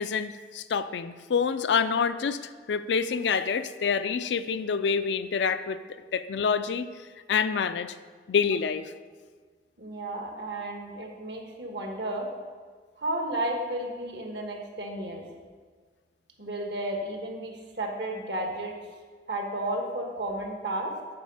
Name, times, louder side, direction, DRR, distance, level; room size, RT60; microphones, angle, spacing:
voice 1, 0.0-2.4 2.7-5.8 6.1-6.9 7.3-7.9 8.3-8.8, left 6 dB, 75° left, 12 dB, 0.4 m, -27 dB
voice 2, 9.8-12.3 13.0-15.2 16.4-18.7 19.3-20.9, right 1 dB, 70° right, 2 dB, 1.4 m, -33 dB
8.6 x 4.7 x 6.4 m, 1.5 s
head